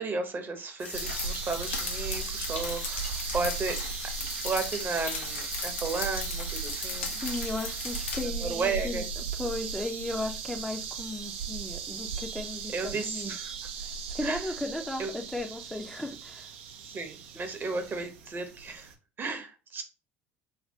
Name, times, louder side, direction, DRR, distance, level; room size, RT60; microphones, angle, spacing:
voice 1, 0.0-3.8 4.4-7.1 8.4-9.0 12.7-13.5 14.2-14.4 15.0-15.1 16.8-18.9 19.2-19.8, right 4 dB, 30° right, 0.7 m, -33 dB
sound 1, 0.8-8.2, left 6 dB, 85° left, 0.5 m, -37 dB
sound 2, 0.9-18.9, right 6 dB, 75° right, 0.4 m, -37 dB
voice 2, 7.2-9.0 9.4-13.3 13.8-16.5, left 2 dB, 5° left, 0.5 m, -36 dB
3.2 x 2.2 x 2.7 m
hypercardioid pair, 70°, 7 cm